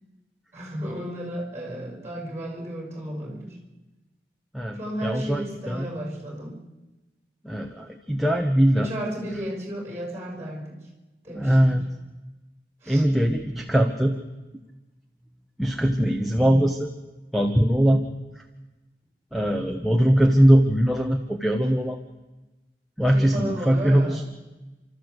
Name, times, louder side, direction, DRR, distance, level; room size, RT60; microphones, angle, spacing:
voice 1, 0.5-3.6 4.7-6.6 8.8-10.8 11.2-11.8 12.8-13.0 23.1-24.2, right 1 dB, 15° right, 1 dB, 5.7 m, -33 dB
voice 2, 4.5-5.9 7.4-8.9 11.3-11.8 12.9-14.2 15.6-16.9 17.3-18.0 18.3-18.4 19.3-22.0 23.0-24.2, equal, ahead, 2 dB, 1.1 m, -21 dB
29.5 x 13.5 x 8.0 m, 1.1 s
head